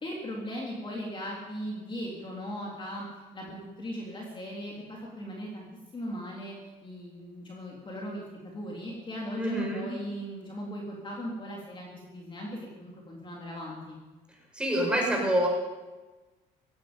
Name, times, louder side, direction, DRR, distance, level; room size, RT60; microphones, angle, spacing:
voice 1, 0.0-5.7 5.9-14.0, equal, 30° left, -3 dB, 3.6 m, -38 dB
voice 2, 9.4-9.9 14.6-15.5, right 1 dB, 5° right, -1 dB, 5.9 m, -26 dB
16.5 x 16.0 x 5.3 m, 1.2 s
cardioid pair, 110°, 17 cm